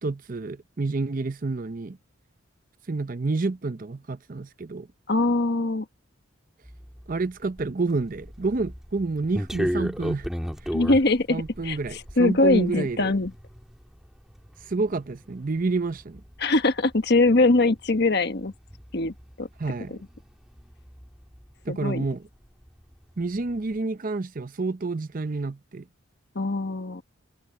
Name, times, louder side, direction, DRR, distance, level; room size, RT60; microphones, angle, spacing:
voice 1, 0.0-2.0 2.9-4.9 7.1-10.3 11.3-13.1 14.7-16.2 19.6-20.0 21.7-22.2 23.2-25.8, right 3 dB, 40° right, 0.6 m, -29 dB
voice 2, 5.1-5.8 10.7-13.3 16.4-18.5 18.9-19.5 19.9-20.0 21.7-22.0 26.3-27.0, left 2 dB, 55° left, 1.3 m, -22 dB
sound 1, 6.6-22.2 22.4-23.7, equal, ahead, 1.5 m, -37 dB
head